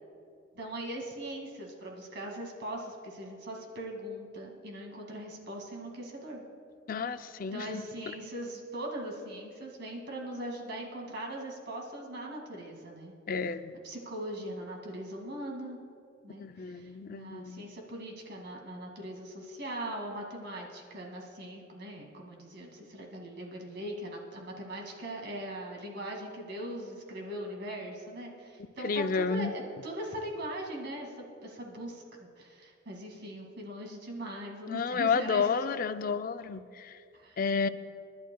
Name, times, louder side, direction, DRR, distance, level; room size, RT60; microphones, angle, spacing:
voice 1, 0.6-6.4 7.5-13.1 13.8-15.8 16.2-35.5 37.1-37.4, right 1 dB, 60° right, 0 dB, 2.2 m, -40 dB
voice 2, 6.9-7.8 13.3-13.7 16.3-17.6 28.8-29.5 34.7-37.0 37.4-37.7, left 5 dB, 45° left, 11 dB, 0.5 m, -31 dB
29.5 x 11.5 x 2.3 m, 2.3 s
head